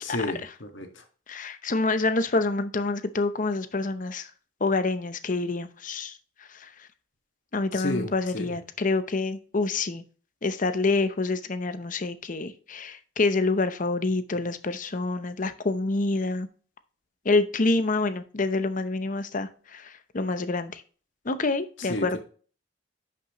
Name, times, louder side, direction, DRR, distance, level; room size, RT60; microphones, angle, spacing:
voice 1, 0.0-1.0 7.7-8.5 21.8-22.2, left 1 dB, 80° left, 5 dB, 1.8 m, -32 dB
voice 2, 1.3-4.3 4.6-6.1 7.5-10.0 10.4-16.5 17.2-20.8 21.2-22.2, left 3 dB, 45° left, 11 dB, 0.8 m, -27 dB
10.5 x 6.0 x 3.0 m, 0.40 s
head